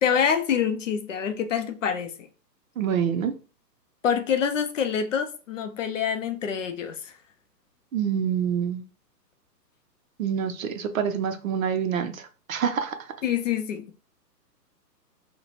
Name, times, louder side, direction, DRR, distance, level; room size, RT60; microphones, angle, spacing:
voice 1, 0.0-2.3 4.0-7.1 13.2-13.9, left 7 dB, 50° left, 0.5 m, -26 dB
voice 2, 2.8-3.3 7.9-8.8 10.2-13.0, right 8 dB, 55° right, 0.6 m, -26 dB
2.7 x 2.1 x 4.1 m
hypercardioid pair, 140°, 50 cm